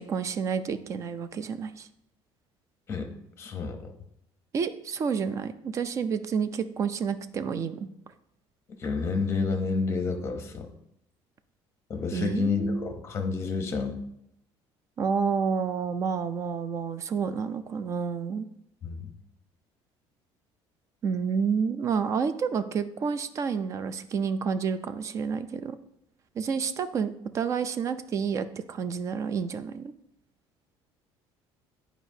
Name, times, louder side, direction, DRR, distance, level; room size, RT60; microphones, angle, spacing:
voice 1, 0.0-1.9 4.5-7.9 12.1-12.9 15.0-18.5 21.0-25.8 26.4-29.9, right 6 dB, 30° right, 12 dB, 0.4 m, -29 dB
voice 2, 3.4-3.9 8.8-10.7 11.9-14.0 18.8-19.1, left 4 dB, 25° left, 6 dB, 0.8 m, -29 dB
9.5 x 5.0 x 2.7 m, 0.77 s
cardioid pair, 170°, 10 cm